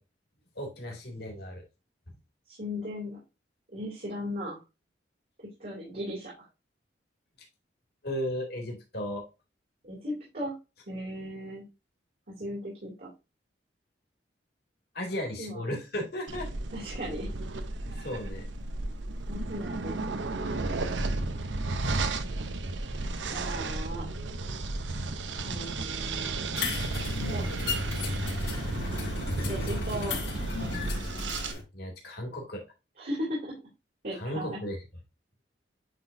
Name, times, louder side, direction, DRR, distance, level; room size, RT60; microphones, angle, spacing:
voice 1, 0.6-1.6 8.0-9.2 14.9-16.5 17.9-18.5 21.8-22.0 31.7-32.6 34.1-34.8, equal, 60° left, 1 dB, 2.5 m, -35 dB
voice 2, 2.5-3.2 3.7-4.6 5.6-6.3 9.8-10.5 10.9-11.6 12.3-13.1 15.4-15.7 16.7-17.3 19.2-20.3 23.3-24.1 25.4-26.8 27.3-27.4 29.4-30.1 33.0-33.5 34.0-34.6, equal, 55° right, -6 dB, 3.1 m, -37 dB
sound 1, 16.3-31.5, right 2 dB, 85° right, 0.8 m, -33 dB
sound 2, 26.5-31.6, left 4 dB, 80° left, 3.1 m, -35 dB
9.5 x 4.0 x 2.7 m, 0.27 s
head